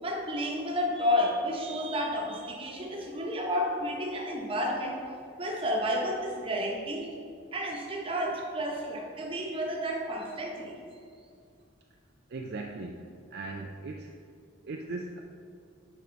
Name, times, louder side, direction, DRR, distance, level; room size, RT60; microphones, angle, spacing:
voice 1, 0.0-5.0 5.4-7.1 7.5-10.8, equal, 25° right, -1 dB, 1.0 m, -31 dB
voice 2, 12.3-13.1 13.3-14.1 14.6-15.2, right 3 dB, 50° right, 1 dB, 0.4 m, -38 dB
6.9 x 4.9 x 5.2 m, 2.4 s
head